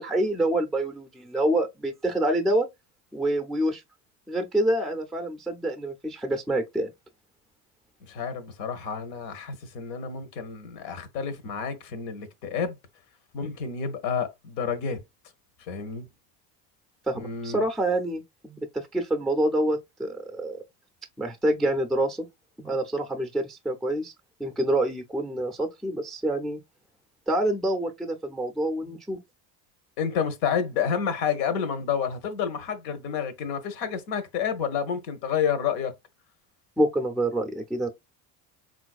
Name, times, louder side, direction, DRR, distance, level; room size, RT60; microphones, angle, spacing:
voice 1, 0.0-2.7 3.1-3.8 4.3-6.9 17.1-20.6 21.2-22.3 22.6-24.1 24.4-26.6 27.3-29.2 36.8-37.9, right 1 dB, ahead, 0.3 m, -27 dB
voice 2, 8.0-12.8 13.3-15.0 15.7-16.1 17.1-17.6 30.0-35.9, left 7 dB, 85° left, 0.9 m, -29 dB
3.9 x 2.5 x 2.3 m
supercardioid pair, 95°, 48 cm